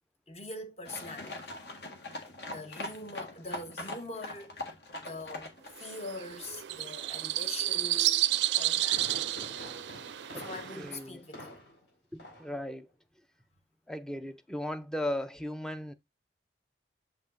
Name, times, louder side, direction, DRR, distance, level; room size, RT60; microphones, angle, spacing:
voice 1, 0.3-1.5 2.5-4.6 5.0-8.3 8.5-9.1 10.3-11.6, left 2 dB, 35° left, 1.1 m, -43 dB
sound 1, 0.9-5.8, left 2 dB, 65° left, 1.6 m, -42 dB
sound 2, 5.8-10.9, right 15 dB, 75° right, 0.4 m, -31 dB
Fireworks, 8.4-11.9 12.2-12.6 12.9-13.0, left 1 dB, 85° left, 4.7 m, -47 dB
voice 2, 10.7-11.2 12.4-12.9 13.9-15.9, left 1 dB, 5° left, 0.4 m, -36 dB
7.3 x 5.3 x 2.6 m
head